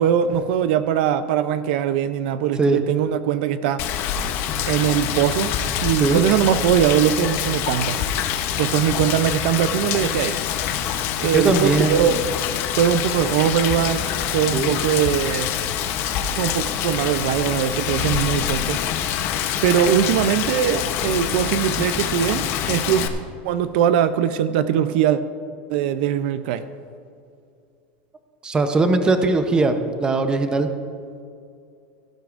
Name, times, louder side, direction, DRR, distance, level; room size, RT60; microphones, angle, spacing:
voice 1, 0.0-3.8 4.7-5.6 5.8-8.0 8.6-10.4 11.2-12.2 12.8-15.5 16.4-18.8 19.6-23.1 23.4-25.2 25.7-26.7, right 10 dB, 65° right, 12 dB, 0.5 m, -21 dB
Rain, 3.8-23.1, left 9 dB, 45° left, 0.8 m, -25 dB
voice 2, 11.3-12.2 14.5-14.7 28.4-29.7 30.0-30.7, right 3 dB, 15° right, 8 dB, 0.7 m, -20 dB
17.0 x 12.5 x 2.5 m, 2.4 s
supercardioid pair, 155°, 6 cm